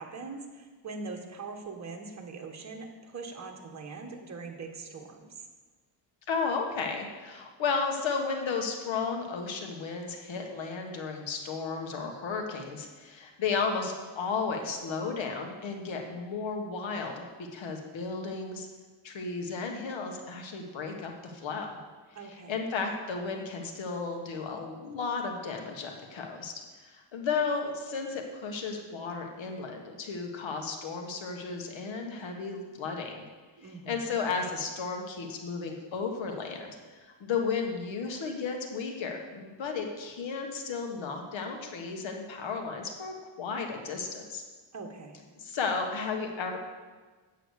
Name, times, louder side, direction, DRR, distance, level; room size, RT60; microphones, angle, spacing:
voice 1, 0.0-5.3 22.2-22.7 33.6-34.1 44.7-45.2, right 4 dB, 35° right, 2 dB, 1.6 m, -42 dB
voice 2, 6.3-18.7 19.0-21.8 22.2-33.2 33.9-36.8 37.2-44.4 45.4-46.6, left 5 dB, 70° left, 3 dB, 1.6 m, -34 dB
8.3 x 7.5 x 6.5 m, 1.4 s
cardioid pair, 100°, 47 cm